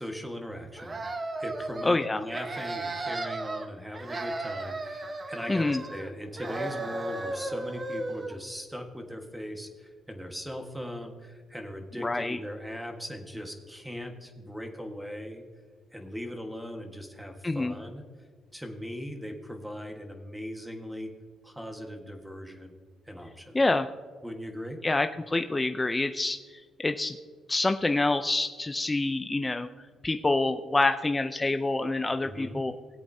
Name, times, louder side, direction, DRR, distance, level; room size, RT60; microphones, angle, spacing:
voice 1, 0.0-15.4 15.9-18.0 18.5-21.1 21.4-22.7 23.1-23.6 24.2-24.8 32.0-32.6, equal, 5° right, 4 dB, 1.5 m, -39 dB
sound 1, 0.8-1.9 2.3-3.7 3.9-6.1 6.4-8.4, right 2 dB, 30° right, 1.1 m, -35 dB
voice 2, 1.8-2.2 5.5-5.8 12.0-12.4 17.4-17.8 23.5-23.9 24.8-27.2 27.5-32.7, left 2 dB, 20° left, 8 dB, 0.5 m, -27 dB
18.0 x 8.3 x 2.8 m, 1.5 s
cardioid pair, 90°, 0 cm